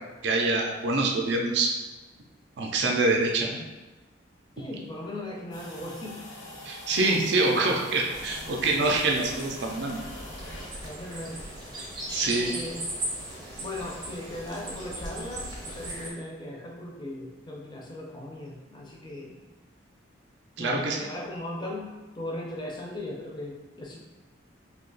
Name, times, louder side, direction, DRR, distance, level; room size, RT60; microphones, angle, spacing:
voice 1, 0.2-1.7 2.6-3.6 6.6-10.0 12.1-12.5 20.6-21.1, right 2 dB, 60° right, 1 dB, 0.4 m, -25 dB
voice 2, 4.6-6.2 10.8-11.5 12.4-12.9 13.6-19.4 20.6-24.0, left 1 dB, 25° left, -1 dB, 0.5 m, -38 dB
sound 1, 5.5-10.7, left 1 dB, 90° left, 0.9 m, -44 dB
sound 2, 8.1-16.1, right 1 dB, 20° right, 0.6 m, -38 dB
2.8 x 2.3 x 3.9 m, 1.2 s
head